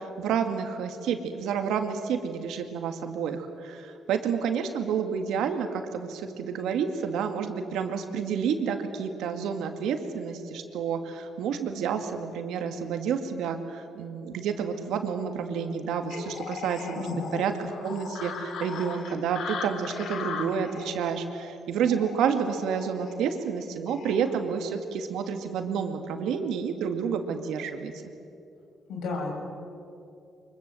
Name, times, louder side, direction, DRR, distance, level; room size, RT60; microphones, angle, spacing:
voice 1, 0.0-27.9, right 7 dB, 85° right, 6 dB, 2.1 m, -29 dB
sound 1, 16.1-24.3, left 5 dB, 70° left, 2.2 m, -39 dB
voice 2, 17.0-17.4 28.9-29.3, left 4 dB, 85° left, 0 dB, 6.1 m, -33 dB
24.0 x 22.0 x 7.8 m, 2.6 s
cardioid pair, 90°, 0 cm